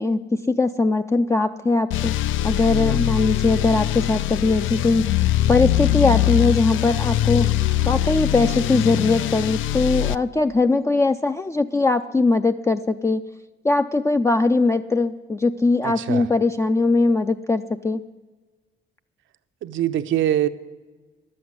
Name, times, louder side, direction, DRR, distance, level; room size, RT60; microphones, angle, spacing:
voice 1, 0.0-2.2 2.4-5.1 5.5-7.5 7.9-13.2 13.6-18.0, left 3 dB, 15° left, 7 dB, 0.4 m, -20 dB
sound 1, 1.9-10.2, left 13 dB, 80° left, 0.4 m, -22 dB
voice 2, 15.8-16.3 19.6-20.5, right 12 dB, 75° right, 11 dB, 0.7 m, -23 dB
11.5 x 7.8 x 9.5 m, 1.3 s
cardioid pair, 90°, 20 cm